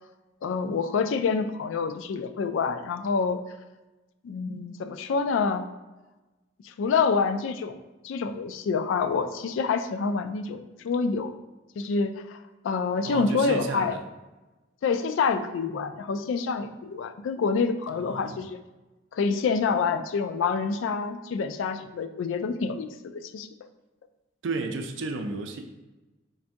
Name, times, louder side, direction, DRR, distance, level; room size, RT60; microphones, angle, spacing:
voice 1, 0.4-3.4 4.2-5.7 6.6-7.8 8.0-11.3 11.8-12.4 12.6-13.9 14.8-18.6 19.1-23.5, left 5 dB, 70° left, 9 dB, 0.3 m, -27 dB
voice 2, 13.0-14.0 17.9-18.5 24.4-25.6, right 3 dB, 65° right, 5 dB, 0.4 m, -33 dB
3.9 x 2.6 x 3.4 m, 1.1 s
head